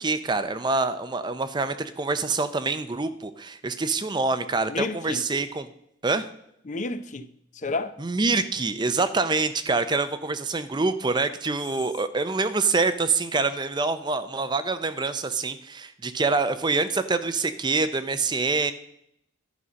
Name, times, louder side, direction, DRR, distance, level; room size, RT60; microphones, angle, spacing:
voice 1, 0.0-5.7 6.0-6.2 8.0-18.7, right 3 dB, 20° right, 0.5 m, -26 dB
voice 2, 4.7-5.2 6.7-7.3 7.5-8.0, left 3 dB, 40° left, 0.5 m, -30 dB
11.0 x 5.4 x 6.3 m
head